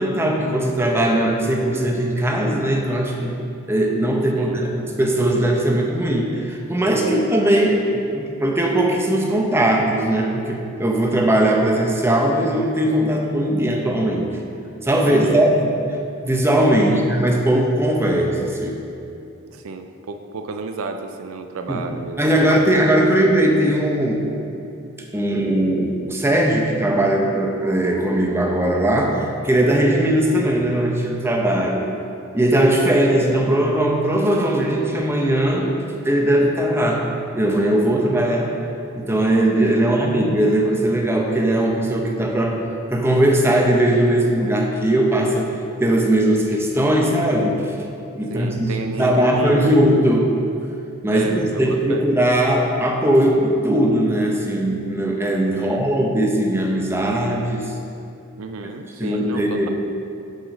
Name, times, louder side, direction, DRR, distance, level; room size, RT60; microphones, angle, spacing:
voice 1, 0.0-3.3 3.7-14.3 14.8-16.0 16.2-18.8 21.7-21.8 22.2-24.2 25.1-31.8 32.3-35.7 36.0-37.1 37.3-38.5 38.9-42.6 42.9-45.5 45.8-47.6 48.1-48.7 49.0-50.3 51.0-57.6 59.0-59.7, right 1 dB, 10° right, 0 dB, 0.7 m, -19 dB
voice 2, 4.4-4.7 7.0-7.3 15.0-15.4 16.9-17.1 19.5-22.5 23.1-23.2 39.8-40.0 48.3-49.8 51.1-52.1 55.5-55.9 58.4-59.7, right 3 dB, 70° right, 6 dB, 0.4 m, -32 dB
6.5 x 4.9 x 6.0 m, 2.7 s
head